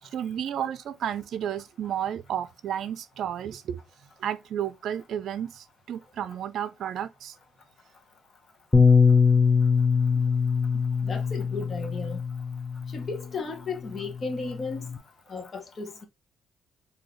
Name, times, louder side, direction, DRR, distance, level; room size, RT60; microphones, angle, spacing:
voice 1, 0.0-3.8 4.2-7.4 10.1-10.2, right 9 dB, 70° right, 0.4 m, -32 dB
Bass guitar, 8.7-13.2 14.0-15.0, left 5 dB, 15° left, 0.6 m, -22 dB
voice 2, 11.0-12.2 12.9-15.0 15.3-16.0, left 4 dB, 45° left, 1.1 m, -35 dB
3.9 x 2.7 x 3.1 m
cardioid pair, 90°, 0 cm